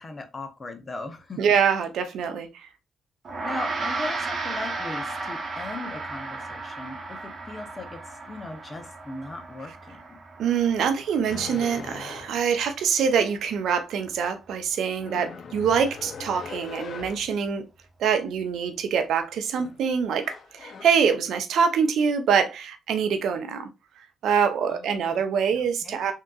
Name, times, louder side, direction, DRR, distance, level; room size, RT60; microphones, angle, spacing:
voice 1, 0.0-1.6 3.4-10.2 24.7-25.1 25.6-26.0, left 2 dB, 35° left, 0.7 m, -38 dB
voice 2, 1.4-2.7 10.4-17.6 18.0-23.7 24.0-26.1, right 7 dB, 75° right, 0.5 m, -25 dB
Gong, 3.2-12.8, right 3 dB, 50° right, 0.9 m, -35 dB
sound 1, 11.3-12.6 15.0-17.4 19.4-19.8 20.2-20.8, left 5 dB, 60° left, 0.4 m, -40 dB
3.4 x 2.8 x 2.3 m
supercardioid pair, 55°, 0 cm